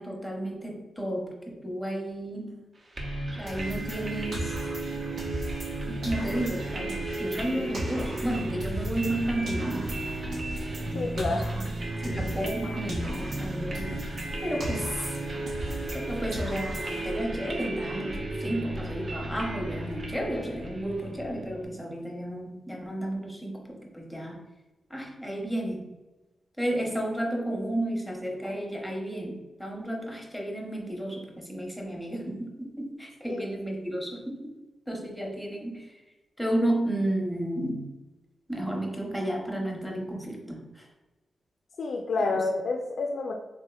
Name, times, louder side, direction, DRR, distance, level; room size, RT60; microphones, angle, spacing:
voice 1, 0.0-2.6 3.3-4.5 5.9-10.0 11.1-11.7 12.0-15.1 15.9-24.4 24.9-25.9 26.6-34.5 34.9-35.9 36.4-37.9 38.5-40.9 42.2-42.4, right 1 dB, 5° left, -1 dB, 0.7 m, -32 dB
sound 1, 3.0-21.6, right 2 dB, 45° right, 0.6 m, -34 dB
sound 2, 3.5-5.8 6.0-9.2 9.5-12.6 12.9-16.0 16.3-17.2, equal, 85° right, 0.7 m, -38 dB
voice 2, 10.9-11.5 33.3-33.4 41.8-43.4, left 3 dB, 75° left, 1 dB, 0.3 m, -29 dB
3.5 x 2.8 x 2.3 m, 1.1 s
wide cardioid pair, 105°, 0 cm